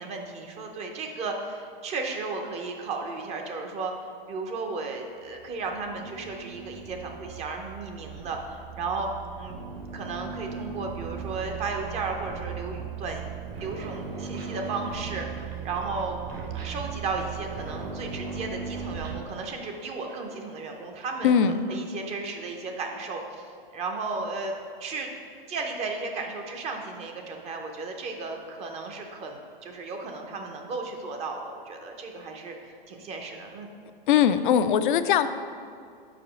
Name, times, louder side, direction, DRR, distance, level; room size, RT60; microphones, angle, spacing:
voice 1, 0.0-3.9 4.3-9.5 9.9-13.3 13.6-16.2 16.5-21.3 21.7-24.5 24.8-25.1 25.5-33.7, right 3 dB, 20° right, 3 dB, 0.6 m, -34 dB
sound 1, 5.3-19.2, right 6 dB, 50° right, 1.2 m, -38 dB
Laughter, 13.5-21.9, right 3 dB, 90° right, 1.0 m, -47 dB
voice 2, 21.2-21.7 34.1-35.3, left 8 dB, 60° left, 11 dB, 0.5 m, -21 dB
5.0 x 4.7 x 6.1 m, 2.3 s
hypercardioid pair, 130°, 29 cm